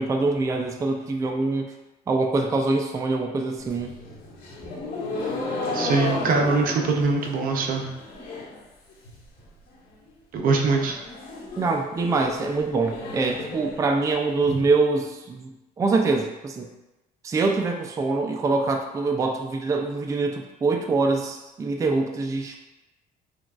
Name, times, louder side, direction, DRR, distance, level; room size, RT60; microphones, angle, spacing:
voice 1, 0.0-1.7 2.1-3.9 11.6-16.7 17.2-22.6, right 3 dB, 20° right, 4 dB, 0.3 m, -24 dB
sound 1, 3.6-8.6 8.9-9.4 9.7-9.8 10.1-10.2 10.5-14.5, left 2 dB, 70° left, 1.2 m, -33 dB
voice 2, 5.7-7.9 10.3-11.0, right 4 dB, 55° right, 2 dB, 0.7 m, -22 dB
5.9 x 2.4 x 2.4 m, 0.99 s
cardioid pair, 110°, 17 cm